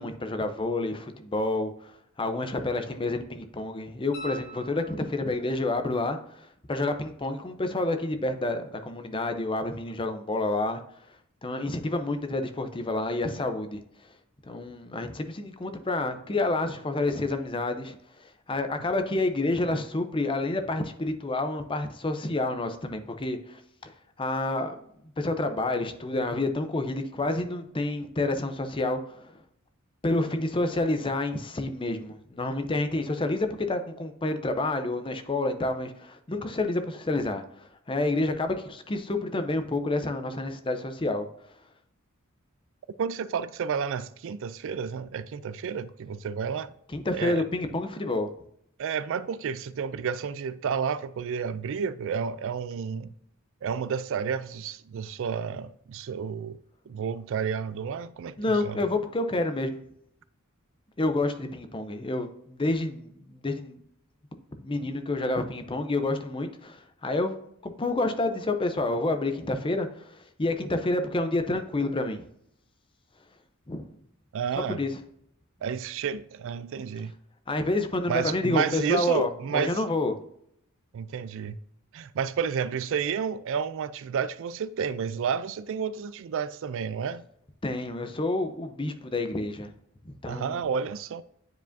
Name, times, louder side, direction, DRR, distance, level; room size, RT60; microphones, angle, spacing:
voice 1, 0.0-10.8 11.4-13.8 14.5-23.9 24.2-29.4 30.0-41.3 46.9-48.3 58.4-59.8 61.0-63.8 64.6-72.3 73.7-73.9 74.6-74.9 77.5-80.1 87.6-89.7 90.0-90.6, left 2 dB, 25° left, 0.6 m, -29 dB
sound 1, 4.1-5.5 8.3-8.4, right 1 dB, 60° left, 1.6 m, -43 dB
voice 2, 43.0-46.7 47.1-47.4 48.8-53.1 53.6-56.6 56.9-58.8 74.3-74.8 75.6-77.1 78.1-79.8 80.9-81.6 81.9-87.2 90.3-91.2, right 6 dB, 65° right, 0.3 m, -31 dB
9.2 x 5.0 x 2.6 m
head